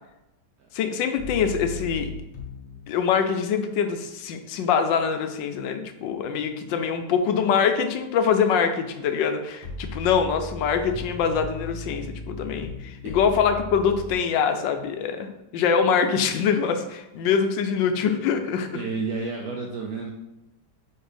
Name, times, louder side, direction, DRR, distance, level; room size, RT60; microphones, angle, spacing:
voice 1, 0.7-2.1 2.9-18.8, left 6 dB, 75° left, 7 dB, 1.2 m, -24 dB
sound 1, 1.2-2.8 9.6-14.1, left 3 dB, 50° left, 0.6 m, -37 dB
voice 2, 18.7-20.1, right 4 dB, 75° right, 1 dB, 0.8 m, -31 dB
4.5 x 4.5 x 5.0 m, 0.92 s
omnidirectional pair, 2.2 m